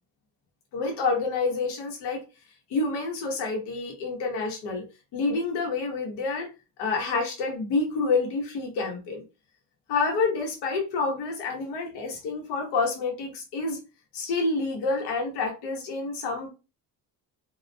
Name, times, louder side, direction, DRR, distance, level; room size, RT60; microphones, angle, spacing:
voice 1, 0.7-2.2 2.7-4.8 5.1-6.5 6.8-9.2 9.9-13.8 14.1-16.5, left 3 dB, 75° left, 0.9 m, -28 dB
2.3 x 2.1 x 2.5 m
cardioid pair, 120°, 40 cm